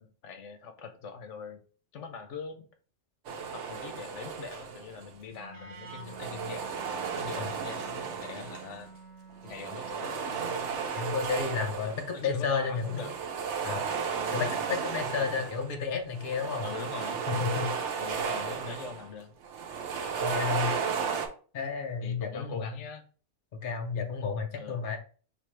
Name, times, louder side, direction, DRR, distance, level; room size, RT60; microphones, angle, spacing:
voice 1, 0.0-1.6 1.9-2.7 3.5-6.9 7.2-8.9 9.4-10.7 12.1-13.1 14.1-14.6 15.2-15.3 16.6-17.2 18.0-19.3 20.3-20.7 22.0-23.0 24.6-24.9, left 5 dB, 90° left, 6 dB, 1.1 m, -42 dB
sound 1, 3.3-5.1 5.9-8.9 9.4-12.2 12.7-15.7 16.1-19.1 19.4-21.3, right 6 dB, 85° right, 1.0 m, -34 dB
Wind instrument woodwind instrument, 5.3-10.2, right 3 dB, 60° right, 0.9 m, -49 dB
voice 2, 11.0-13.1 13.6-13.8 14.3-16.7 17.3-18.0 20.2-20.7 21.5-22.6 23.5-25.0, left 5 dB, 50° left, 3 dB, 0.9 m, -32 dB
5.3 x 2.7 x 3.2 m, 0.40 s
omnidirectional pair, 1.2 m